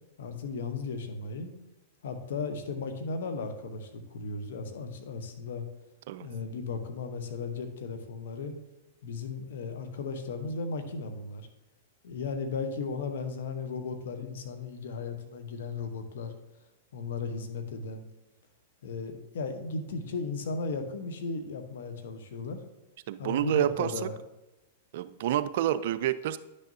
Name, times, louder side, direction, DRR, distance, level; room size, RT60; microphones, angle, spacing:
voice 1, 0.2-1.5 2.0-5.6 6.2-8.5 9.0-11.5 12.0-16.3 16.9-18.0 18.8-22.6 23.2-24.2, left 4 dB, 70° left, 8 dB, 1.0 m, -36 dB
voice 2, 23.1-24.1 24.9-26.4, right 12 dB, 60° right, 13 dB, 0.4 m, -28 dB
10.0 x 6.5 x 2.7 m, 1.0 s
hypercardioid pair, 115°, 0 cm